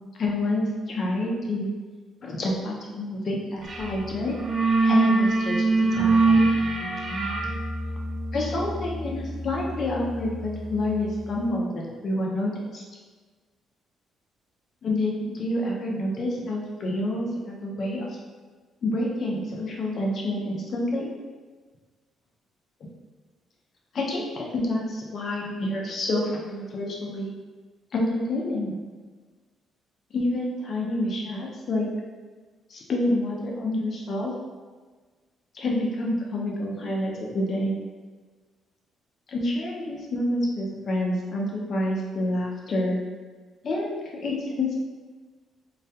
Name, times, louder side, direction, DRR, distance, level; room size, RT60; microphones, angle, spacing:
voice 1, 0.2-1.7 2.2-4.4 4.8-6.5 8.3-12.8 14.8-18.2 18.8-21.1 23.9-27.3 27.9-28.8 30.1-31.9 32.7-34.3 35.5-37.7 39.3-43.0 43.6-44.0 44.2-44.7, left 1 dB, 50° left, -2 dB, 0.5 m, -28 dB
sound 1, 3.7-3.9 4.2-10.8, right 3 dB, 45° right, 0.4 m, -24 dB
2.3 x 2.1 x 2.7 m, 1.4 s
cardioid pair, 90°, 0 cm